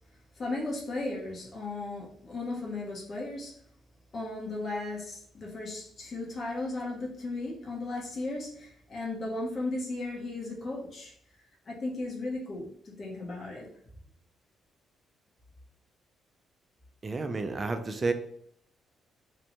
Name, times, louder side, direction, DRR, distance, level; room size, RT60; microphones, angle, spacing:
voice 1, 0.4-3.5 4.1-11.1 11.7-13.7, left 2 dB, 45° left, -3 dB, 0.8 m, -36 dB
voice 2, 17.0-18.1, right 3 dB, 30° right, 7 dB, 0.4 m, -30 dB
2.6 x 2.1 x 2.8 m, 0.65 s
cardioid pair, 90°, 0 cm